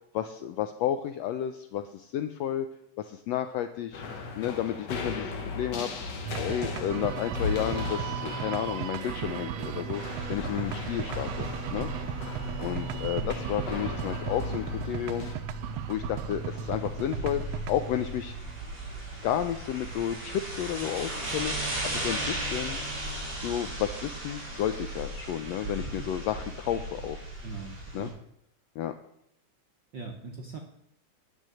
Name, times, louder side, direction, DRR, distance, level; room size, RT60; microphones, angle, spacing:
voice 1, 0.1-2.7 3.0-10.0 10.3-11.9 12.6-15.3 15.9-18.3 19.2-22.8 23.4-27.2 27.9-28.1 28.8-28.9, left 10 dB, 90° left, 9 dB, 1.5 m, -32 dB
sound 1, 3.9-15.3, left 3 dB, 55° left, 1.1 m, -37 dB
sound 2, 6.2-23.3, right 8 dB, 85° right, 1.4 m, -38 dB
sound 3, 9.9-28.1, right 1 dB, 35° right, 6.4 m, -37 dB
voice 2, 13.1-13.4 27.4-28.1 29.9-30.6, right 3 dB, 65° right, 2 dB, 1.2 m, -40 dB
10.0 x 6.4 x 7.6 m, 0.74 s
omnidirectional pair, 3.5 m